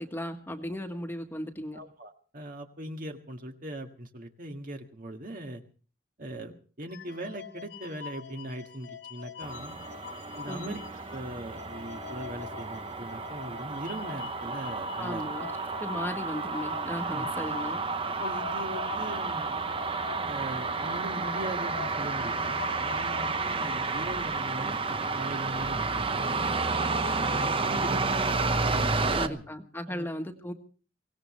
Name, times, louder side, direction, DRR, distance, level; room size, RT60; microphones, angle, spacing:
voice 1, 0.0-1.8 10.4-10.8 15.0-15.5 15.8-17.8 24.6-24.7 29.1-30.5, equal, 10° left, 5 dB, 1.5 m, -36 dB
voice 2, 1.7-5.6 6.2-9.8 10.4-10.8 11.1-15.3 17.0-17.3 18.0-19.6 20.3-24.7 25.1-26.4 27.2-28.1 28.6-29.5 29.9-30.1, right 1 dB, 50° right, 4 dB, 1.8 m, -40 dB
sound 1, 6.9-11.2 11.5-23.8, left 7 dB, 85° left, 2.4 m, -44 dB
sound 2, 9.4-29.3, right 4 dB, 30° right, 0.9 m, -31 dB
24.0 x 18.0 x 3.2 m, 0.38 s
head